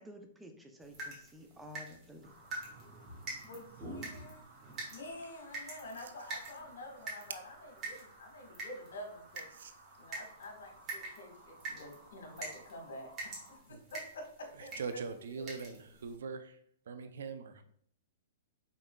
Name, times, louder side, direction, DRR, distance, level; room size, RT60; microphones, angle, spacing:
voice 1, 0.0-2.3, left 1 dB, 5° right, 4 dB, 0.5 m, -52 dB
sound 1, 0.8-16.2, right 2 dB, 25° right, 1.6 m, -47 dB
sound 2, 2.2-13.6, right 1 dB, 45° right, 1.7 m, -59 dB
voice 2, 3.4-4.5 4.9-9.5 9.9-15.4, left 1 dB, 75° left, 2 dB, 1.4 m, -48 dB
voice 3, 14.8-16.6 16.9-17.6, right 5 dB, 75° right, 10 dB, 0.5 m, -42 dB
5.2 x 3.5 x 2.2 m, 0.64 s
hypercardioid pair, 135°, 0 cm